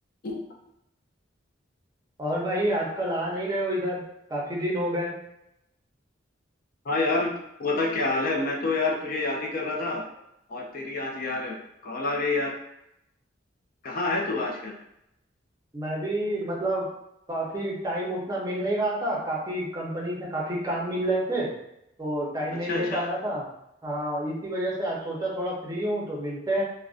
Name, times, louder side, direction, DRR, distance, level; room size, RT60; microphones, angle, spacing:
voice 1, 2.2-4.0 4.3-5.1 15.7-16.9 17.3-21.5 22.0-23.4 23.8-26.6, right 1 dB, 20° right, -3 dB, 0.6 m, -28 dB
voice 2, 6.8-7.3 7.6-10.0 10.5-11.6 11.8-12.5 13.8-14.7 22.5-23.1, left 3 dB, 50° left, 0 dB, 0.4 m, -28 dB
2.4 x 2.1 x 2.4 m, 0.83 s
head